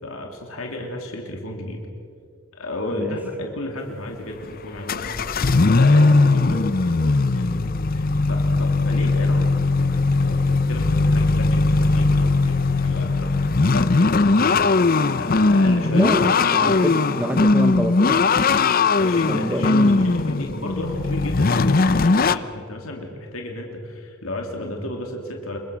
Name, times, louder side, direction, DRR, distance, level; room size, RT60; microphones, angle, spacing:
voice 1, 0.0-1.8 2.5-16.1 16.6-16.8 19.0-25.6, left 1 dB, 80° left, 2 dB, 2.9 m, -33 dB
sound 1, 4.2-4.4 4.9-22.4, left 3 dB, 45° left, 0.7 m, -19 dB
voice 2, 15.9-18.6 19.3-20.1, equal, 10° right, 6 dB, 0.9 m, -27 dB
27.5 x 22.5 x 6.3 m, 2.4 s
head